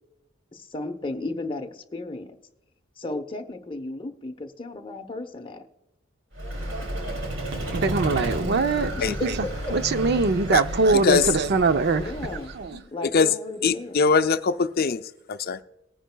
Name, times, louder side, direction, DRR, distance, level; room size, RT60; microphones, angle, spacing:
voice 1, 0.5-2.4 3.0-5.7 9.0-9.3 9.6-9.7 11.9-12.6 12.9-14.0, left 2 dB, 25° left, 0.9 m, -34 dB
Vehicle, 6.3-12.8, right 1 dB, 75° right, 2.7 m, -32 dB
voice 2, 7.7-12.0 12.5-12.8, right 3 dB, 55° right, 0.6 m, -23 dB
voice 3, 10.9-11.3 13.1-13.3 13.6-15.6, left 5 dB, 50° left, 0.4 m, -22 dB
19.5 x 10.0 x 2.3 m
head